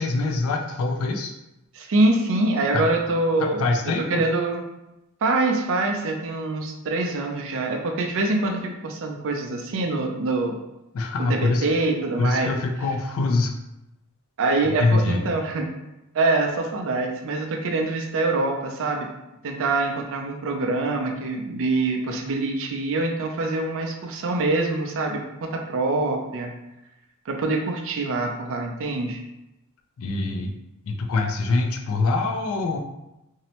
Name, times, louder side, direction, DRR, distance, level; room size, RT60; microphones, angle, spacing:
voice 1, 0.0-1.3 2.7-2.9 3.4-4.2 10.9-11.7 12.2-13.5 14.6-15.2 30.0-30.5 30.9-32.8, left 3 dB, 70° left, 4 dB, 0.4 m, -24 dB
voice 2, 1.7-3.6 4.1-4.6 5.2-10.6 11.3-12.5 14.4-15.7 16.1-19.1 19.4-26.5 27.3-29.2, right 2 dB, 65° right, 2 dB, 0.4 m, -24 dB
2.7 x 2.0 x 2.8 m, 0.91 s
head